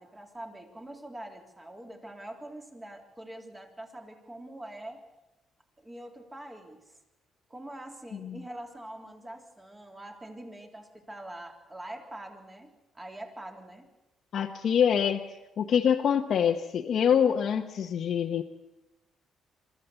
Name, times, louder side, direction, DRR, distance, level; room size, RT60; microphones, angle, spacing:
voice 1, 0.0-5.0 5.8-7.0 7.5-13.9, right 1 dB, 20° right, 3 dB, 3.5 m, -44 dB
voice 2, 14.3-18.4, left 8 dB, 65° left, 2 dB, 1.0 m, -25 dB
23.5 x 14.5 x 8.1 m, 0.99 s
cardioid pair, 90°, 0 cm